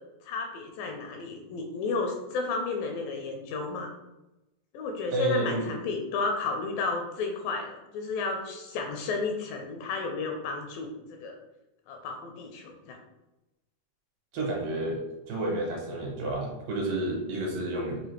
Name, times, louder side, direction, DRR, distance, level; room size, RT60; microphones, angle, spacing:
voice 1, 0.2-3.9 4.7-11.4 11.9-13.0, left 3 dB, 80° left, 3 dB, 2.1 m, -32 dB
voice 2, 5.1-5.7 14.3-15.0 15.3-18.0, right 2 dB, 70° right, -2 dB, 2.6 m, -30 dB
6.7 x 2.4 x 3.0 m, 0.98 s
omnidirectional pair, 4.3 m